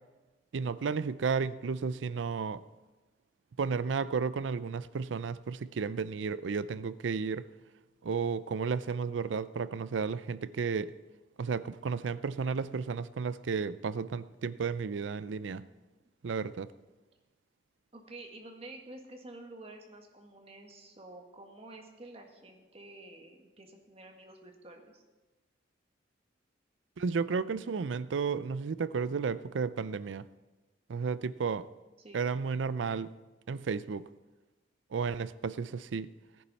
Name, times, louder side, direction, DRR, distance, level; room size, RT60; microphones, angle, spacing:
voice 1, 0.5-2.6 3.6-7.5 8.0-10.9 11.4-15.7 16.2-16.7 27.0-30.3 30.9-31.7 32.1-33.1 33.5-34.1 34.9-36.1, right 5 dB, 85° right, 0.5 m, -33 dB
voice 2, 17.9-25.0 32.0-32.2, right 2 dB, 35° right, 1.7 m, -50 dB
18.0 x 10.0 x 4.1 m
head